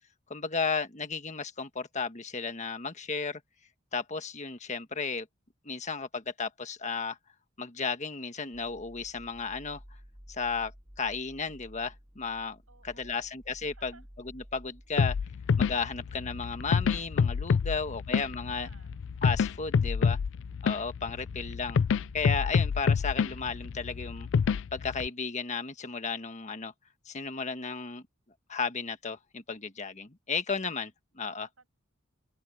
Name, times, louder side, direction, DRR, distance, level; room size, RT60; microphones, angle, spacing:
voice 1, 0.3-3.4 3.9-5.3 5.6-7.2 7.6-9.8 10.3-10.7 11.0-12.6 12.8-13.9 14.3-15.1 15.6-18.7 19.2-20.2 20.6-21.8 22.1-24.3 24.7-26.7 27.0-28.0 28.5-31.5, left 5 dB, 35° left, 1.4 m, -34 dB
sound 1, 8.5-24.4, equal, 20° right, 5.2 m, -53 dB
voice 2, 12.7-13.4 13.7-14.1 17.4-19.0 31.4-31.7, right 4 dB, 85° right, 7.6 m, -61 dB
sound 2, 15.0-25.1, left 6 dB, 65° left, 0.4 m, -28 dB
open air
head